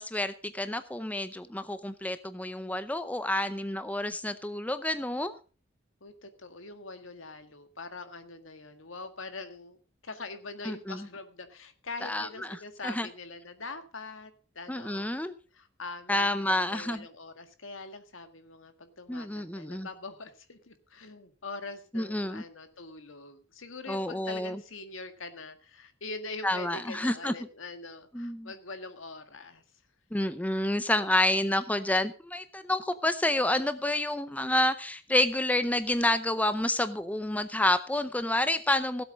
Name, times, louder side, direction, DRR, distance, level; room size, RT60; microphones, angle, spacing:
voice 1, 0.0-5.3 10.6-11.0 12.0-12.6 12.8-13.1 14.7-15.3 16.1-17.1 19.1-19.9 21.9-22.4 23.9-24.6 26.4-27.3 28.1-28.5 30.1-39.0, left 1 dB, 10° left, 12 dB, 0.6 m, -29 dB
voice 2, 6.0-9.8 10.0-15.1 15.5-29.6, left 3 dB, 75° left, 9 dB, 1.8 m, -43 dB
16.5 x 8.0 x 5.1 m, 0.35 s
head